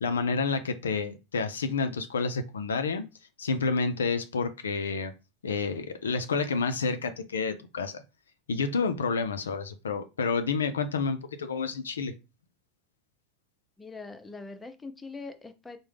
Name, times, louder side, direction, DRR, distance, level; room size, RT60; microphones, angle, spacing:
voice 1, 0.0-3.0 3.4-5.1 5.4-8.0 8.5-12.1, left 4 dB, 85° left, 0.3 m, -29 dB
voice 2, 13.8-15.8, left 3 dB, 15° left, 0.5 m, -42 dB
3.5 x 2.0 x 3.3 m
hypercardioid pair, 85°, 0 cm